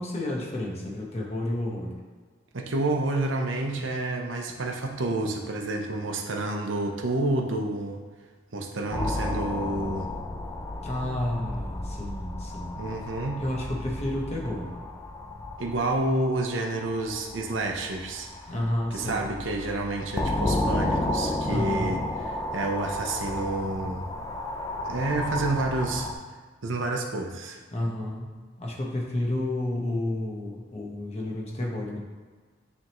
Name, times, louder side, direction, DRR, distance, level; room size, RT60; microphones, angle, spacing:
voice 1, 0.0-1.9 10.8-12.8 13.4-14.7 18.5-19.3 21.4-22.0 27.7-28.3 28.6-32.0, left 1 dB, 35° left, -2 dB, 1.2 m, -31 dB
voice 2, 2.5-8.0 8.5-10.1 12.8-13.4 15.6-18.3 18.9-22.0 22.3-24.0 24.9-26.1 26.6-27.6, right 2 dB, 75° right, 2 dB, 0.8 m, -29 dB
sound 1, 8.9-26.1, left 1 dB, 15° left, 0.5 m, -33 dB
9.7 x 3.5 x 3.1 m, 1.5 s
head